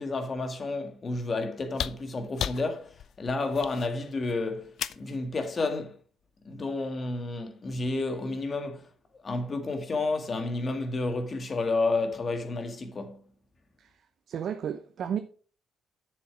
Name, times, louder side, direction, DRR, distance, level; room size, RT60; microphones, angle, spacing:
voice 1, 0.0-6.0 6.4-8.9 9.1-13.2, left 3 dB, 40° left, 1.8 m, -31 dB
sound 1, 1.7-5.2 6.6-6.7, left 9 dB, 70° left, 0.4 m, -36 dB
voice 2, 14.3-15.2, right 8 dB, 65° right, 0.7 m, -32 dB
7.3 x 6.7 x 4.9 m
cardioid pair, 90°, 0 cm